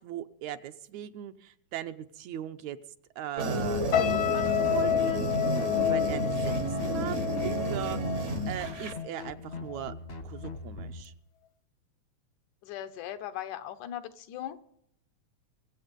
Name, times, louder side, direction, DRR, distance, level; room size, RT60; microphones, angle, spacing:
voice 1, 0.0-2.8 3.2-5.5 5.8-8.0 8.5-10.0 10.2-11.1, right 11 dB, 75° right, 9 dB, 2.0 m, -39 dB
sound 1, 3.4-8.9, right 1 dB, 55° right, 0.8 m, -31 dB
sound 2, 3.7-11.0, left 3 dB, 45° left, 0.8 m, -41 dB
sound 3, 3.9-9.2 9.5-9.8, left 11 dB, 65° left, 1.2 m, -30 dB
voice 2, 12.6-14.6, left 11 dB, 85° left, 9 dB, 2.4 m, -38 dB
24.0 x 8.1 x 5.3 m, 0.73 s
omnidirectional pair, 3.4 m